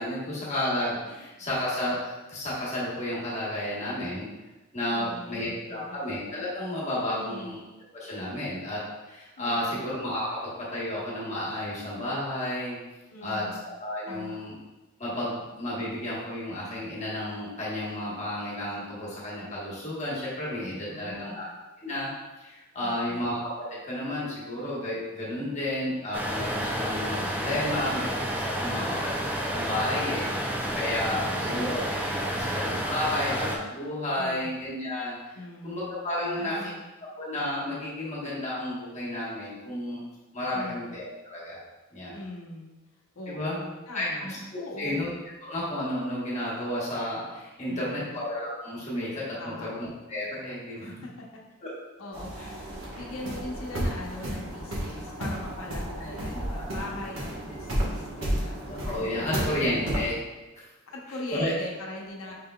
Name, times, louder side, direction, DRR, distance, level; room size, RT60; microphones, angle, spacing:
voice 1, 0.0-2.0 2.3-4.3 4.7-7.6 7.9-12.8 13.2-13.5 13.8-14.5 15.0-21.4 21.8-22.1 22.4-28.8 29.4-31.2 31.5-31.8 32.1-35.2 35.6-36.6 37.2-40.0 40.3-41.6 41.9-42.2 43.3-43.6 43.9-44.4 44.8-45.1 45.4-50.8 51.6-51.7 52.4-52.5 56.3-56.4 58.7-60.2 60.6-60.7 61.3-61.5, left 1 dB, 35° left, -6 dB, 1.2 m, -32 dB
voice 2, 4.9-6.0 7.1-7.5 9.4-9.8 13.1-13.6 14.1-14.4 20.6-21.4 22.8-23.2 28.7-29.0 30.3-30.6 31.1-31.8 32.2-32.6 34.2-34.5 35.4-35.8 36.2-36.8 40.5-40.9 42.1-42.7 43.1-44.3 44.6-45.0 47.7-48.1 49.4-49.7 50.8-51.3 52.0-52.4 52.9-59.8 60.9-62.3, left 1 dB, 85° left, -1 dB, 0.8 m, -41 dB
sound 1, 26.1-33.6, equal, 10° right, 0.4 m, -30 dB
sound 2, 52.1-60.1, equal, 70° right, 1.3 m, -32 dB
5.0 x 3.7 x 2.3 m, 1.1 s
head